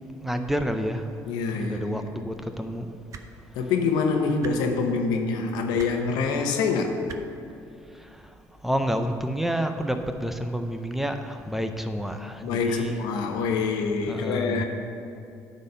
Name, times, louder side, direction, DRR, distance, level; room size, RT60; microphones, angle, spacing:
voice 1, 0.2-1.1 1.6-2.9 8.0-8.2 8.6-13.0 14.1-14.6, equal, 5° right, 6 dB, 0.6 m, -29 dB
voice 2, 1.3-2.1 3.5-7.0 12.4-14.6, left 4 dB, 85° left, 4 dB, 0.9 m, -25 dB
sound 1, 3.1-3.3 4.4-4.5 5.8-5.9 7.1-7.2 8.4-8.5, right 7 dB, 50° right, 0.6 m, -40 dB
9.5 x 4.2 x 6.6 m, 2.6 s
cardioid pair, 90°, 7 cm